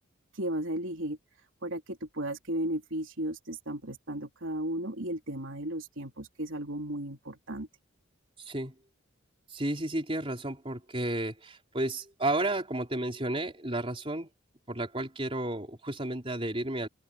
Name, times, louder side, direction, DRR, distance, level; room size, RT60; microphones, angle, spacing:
voice 1, 0.4-1.2 1.6-7.7, right 1 dB, 70° right, 3.5 m, -35 dB
voice 2, 8.4-8.7 9.5-14.3 14.7-16.9, right 1 dB, 25° right, 4.5 m, -32 dB
open air
head